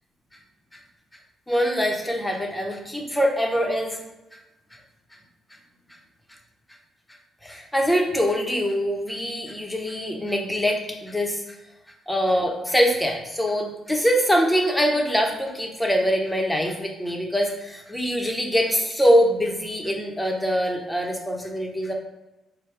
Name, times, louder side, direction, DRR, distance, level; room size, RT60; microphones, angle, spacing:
voice 1, 1.5-4.0 7.4-11.4 12.1-21.9, equal, 10° left, 1 dB, 0.8 m, -23 dB
4.9 x 2.2 x 4.5 m, 1.0 s
cardioid pair, 90°, 0 cm